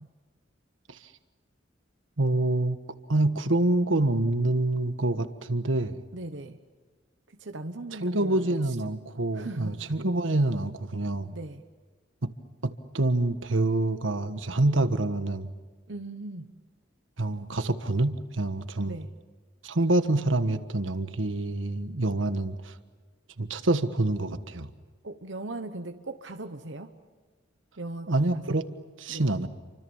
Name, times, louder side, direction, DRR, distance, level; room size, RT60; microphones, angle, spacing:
voice 1, 2.2-2.8 3.1-6.0 7.9-11.3 12.2-12.3 12.6-15.5 17.2-19.0 19.6-22.8 23.4-24.7 28.1-28.7 29.0-29.5, right 2 dB, 85° right, 10 dB, 1.5 m, -26 dB
voice 2, 6.1-6.6 7.4-8.4 9.3-9.7 11.3-11.6 15.9-16.5 18.8-19.1 25.0-27.0 27.8-28.4 29.1-29.3, right 2 dB, 70° right, 6 dB, 1.2 m, -38 dB
29.0 x 25.0 x 7.2 m, 1.5 s
head